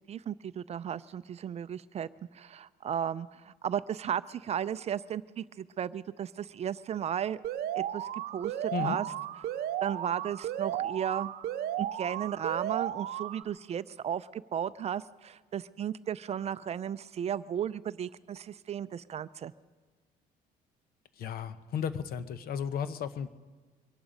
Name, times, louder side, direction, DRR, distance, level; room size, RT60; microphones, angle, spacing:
voice 1, 0.1-2.1 2.3-7.4 7.7-9.1 9.8-11.3 11.8-19.5, right 9 dB, 40° right, 16 dB, 0.4 m, -35 dB
Alarm, 7.4-13.4, right 11 dB, 70° right, 0.7 m, -34 dB
voice 2, 21.2-23.3, left 7 dB, 60° left, 13 dB, 0.9 m, -34 dB
23.5 x 11.0 x 5.2 m, 1.4 s
cardioid pair, 110°, 17 cm